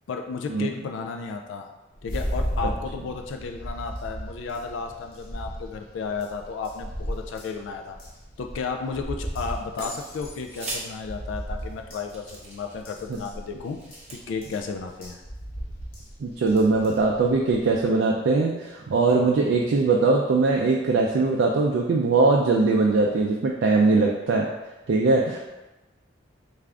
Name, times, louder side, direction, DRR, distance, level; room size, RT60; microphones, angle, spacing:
voice 1, 0.1-1.7 2.0-8.0 8.4-13.8 14.1-15.2, left 5 dB, 85° left, 4 dB, 0.3 m, -33 dB
sound 1, 1.9-17.9, equal, 50° left, 0.9 m, -36 dB
sound 2, 9.4-9.9 10.5-10.8 11.6-11.7 12.1-13.0 13.6-14.2, right 2 dB, 35° right, 0.6 m, -39 dB
voice 2, 16.2-24.5 24.9-25.4, right 3 dB, 75° right, -1 dB, 0.3 m, -21 dB
3.3 x 2.4 x 3.5 m, 1.1 s
head